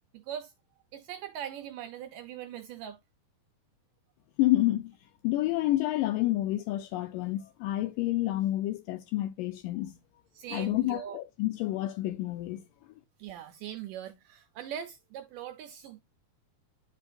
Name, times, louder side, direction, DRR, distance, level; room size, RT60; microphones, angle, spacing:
voice 1, 0.1-0.5 0.9-3.0 10.3-11.2 13.2-16.0, right 10 dB, 80° right, 1.9 m, -41 dB
voice 2, 4.4-4.9 5.2-9.9 10.5-12.6, left 16 dB, 80° left, 2.0 m, -29 dB
10.5 x 5.3 x 2.4 m
omnidirectional pair, 4.4 m